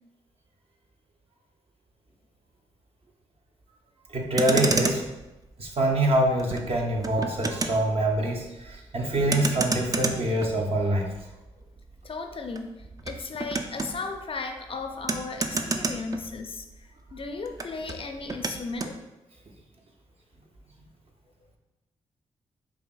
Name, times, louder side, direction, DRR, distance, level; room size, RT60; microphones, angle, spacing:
voice 1, 4.1-5.0 5.6-11.1, right 1 dB, 50° right, 0 dB, 0.8 m, -25 dB
Motor vehicle (road), 4.2-16.8 17.1-19.0, right 3 dB, 30° right, 0.4 m, -32 dB
voice 2, 12.0-18.9, left 4 dB, 45° left, 5 dB, 0.5 m, -36 dB
4.8 x 2.7 x 2.4 m, 1.0 s
supercardioid pair, 40°, 13 cm